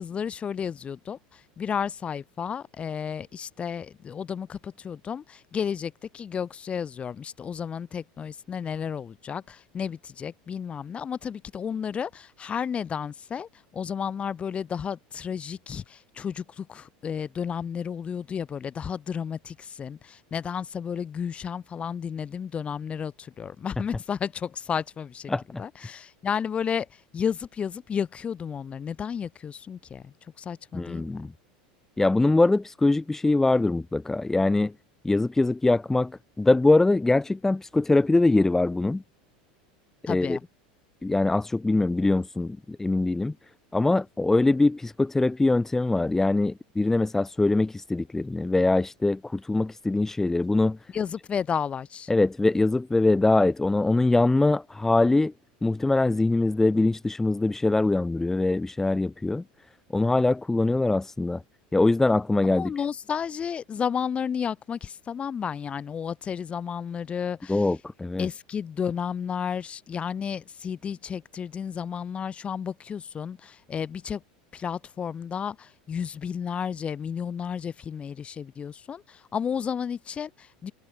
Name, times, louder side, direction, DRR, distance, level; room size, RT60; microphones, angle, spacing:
voice 1, 0.0-25.3 25.6-26.9 27.1-31.3 40.1-40.4 50.9-52.1 62.4-67.7 68.2-74.2 74.5-80.7, left 7 dB, 30° left, 2.8 m, -32 dB
voice 2, 25.3-25.6 30.7-31.3 32.0-34.7 35.0-36.1 36.4-39.0 40.0-40.4 41.0-43.3 43.7-50.8 52.1-55.3 55.6-59.4 59.9-61.4 61.7-62.7 67.5-68.3, left 2 dB, 10° left, 1.6 m, -23 dB
hypercardioid pair, 100°, 4 cm